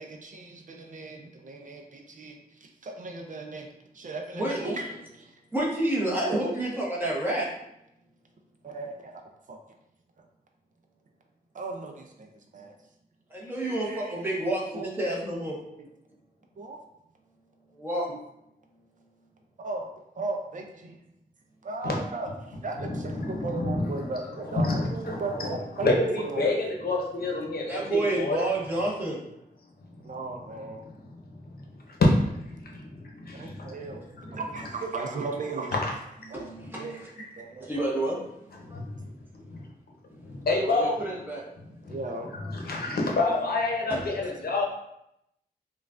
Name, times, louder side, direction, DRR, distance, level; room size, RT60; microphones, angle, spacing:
voice 1, 0.0-4.9 5.2-5.4 8.6-9.6 11.5-12.7 13.6-14.9 15.8-15.9 16.6-16.8 18.1-18.2 19.6-21.0 21.6-25.9 26.2-26.5 30.0-30.8 33.3-34.0 34.3-35.7 36.3-36.5 36.8-37.7 41.9-42.3, right 3 dB, 55° right, 3 dB, 0.5 m, -37 dB
voice 2, 4.3-4.8 5.5-7.5 13.3-15.6 17.8-18.1 27.7-29.2 36.3-37.0 37.7-38.2 38.7-38.8 40.6-41.4 43.9-44.0, right 1 dB, 15° right, -5 dB, 1.0 m, -29 dB
voice 3, 22.9-23.9 24.5-28.4 32.0-32.1 32.3-34.4 35.8-35.9 38.6-39.0 39.5-39.6 40.2-40.9 41.8-42.0 42.5-44.6, left 2 dB, 70° left, -1 dB, 0.8 m, -28 dB
5.3 x 2.3 x 2.5 m, 0.80 s
wide cardioid pair, 160°, 16 cm